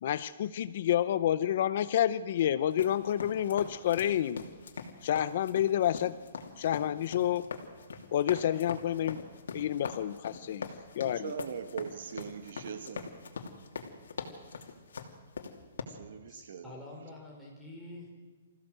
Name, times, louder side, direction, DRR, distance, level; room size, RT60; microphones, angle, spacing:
voice 1, 0.0-4.4 5.0-6.2 6.6-7.5 8.1-9.2 9.5-11.3, left 11 dB, 50° left, 16 dB, 0.6 m, -29 dB
sound 1, 2.7-15.8, left 5 dB, 80° left, 2.7 m, -42 dB
voice 2, 11.0-13.1 15.9-16.8, right 7 dB, 60° right, 9 dB, 1.5 m, -41 dB
voice 3, 16.3-18.1, left 1 dB, ahead, -5 dB, 4.7 m, -47 dB
26.0 x 15.5 x 7.9 m, 1.4 s
hypercardioid pair, 165°, 0 cm